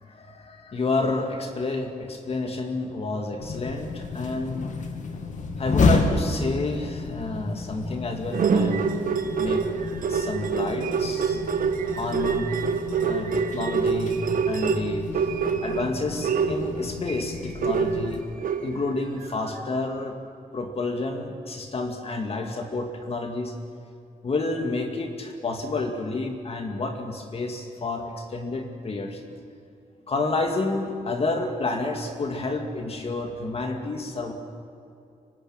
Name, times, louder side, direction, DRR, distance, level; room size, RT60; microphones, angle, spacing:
voice 1, 0.0-4.7 5.6-9.0 9.4-9.6 10.1-11.4 12.0-12.5 13.0-14.2 14.5-15.1 15.6-20.2 20.5-23.5 24.2-29.2 30.1-34.3, left 3 dB, 45° left, 4 dB, 2.3 m, -30 dB
sound 1, 3.4-18.2, left 3 dB, 60° left, 2.5 m, -31 dB
sound 2, 8.3-15.9 16.2-19.0 19.5-19.6, right 6 dB, 75° right, 1.7 m, -25 dB
24.5 x 19.5 x 9.0 m, 2.5 s
wide cardioid pair, 145°, 14 cm